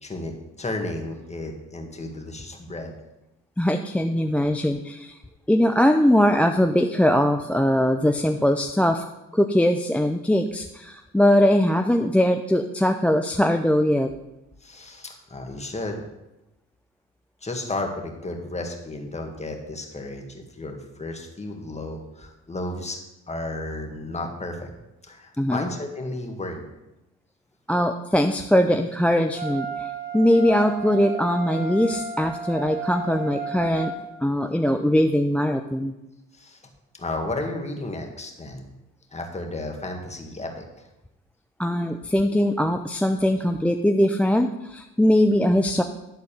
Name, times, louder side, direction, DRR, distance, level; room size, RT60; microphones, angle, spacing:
voice 1, 0.0-2.9 14.6-16.1 17.4-23.0 23.3-24.7 25.0-26.7 36.3-36.6 36.9-38.7 39.1-40.9, left 2 dB, 20° left, 3 dB, 1.7 m, -33 dB
voice 2, 3.6-5.2 5.5-9.0 9.3-14.1 25.4-25.7 27.7-29.9 30.1-33.9 34.2-35.9 41.6-45.8, left 1 dB, 5° left, 6 dB, 0.4 m, -21 dB
Wind instrument woodwind instrument, 29.3-34.0, right 5 dB, 15° right, 2.5 m, -33 dB
11.5 x 4.0 x 6.8 m, 0.95 s
cardioid pair, 90°, 30 cm